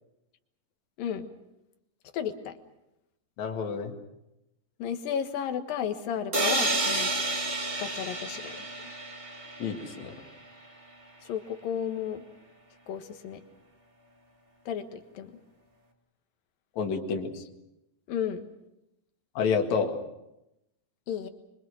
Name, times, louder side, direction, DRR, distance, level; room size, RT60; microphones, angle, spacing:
voice 1, 2.1-2.6 4.8-7.1 7.8-8.6 8.8-8.9 11.2-12.2 12.9-13.4 14.7-15.3 18.1-18.4 21.1-21.3, left 8 dB, 80° left, 7 dB, 3.2 m, -33 dB
voice 2, 3.4-3.9 9.6-10.2 16.8-17.3 19.3-19.9, left 5 dB, 55° left, 3 dB, 3.1 m, -29 dB
sound 1, 6.3-10.1, right 2 dB, 20° right, 1.6 m, -30 dB
24.5 x 24.5 x 6.4 m, 0.88 s
omnidirectional pair, 4.0 m